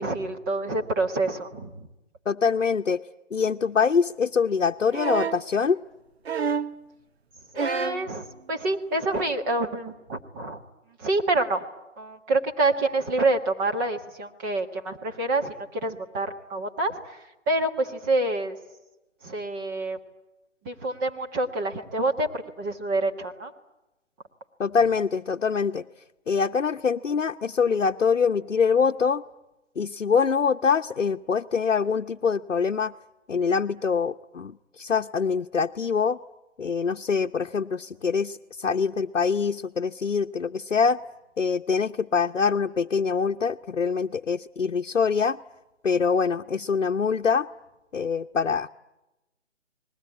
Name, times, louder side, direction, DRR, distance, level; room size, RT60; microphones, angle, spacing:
voice 1, 0.0-1.9 7.5-10.6 11.0-11.6 12.0-18.6 19.2-20.0 20.6-23.5, right 2 dB, 15° right, 3 dB, 1.5 m, -27 dB
voice 2, 2.3-3.0 3.3-5.8 24.6-25.8 26.3-29.2 29.8-32.9 33.3-36.2 36.6-41.0 41.4-45.4 45.8-47.5 47.9-48.7, left 5 dB, 80° left, 4 dB, 0.9 m, -24 dB
sound 1, 4.9-5.5 6.2-6.8 7.5-8.1 9.3-9.4, right 6 dB, 55° right, 0.9 m, -28 dB
30.0 x 20.5 x 9.4 m, 0.99 s
figure-of-eight pair, 150°, 37 cm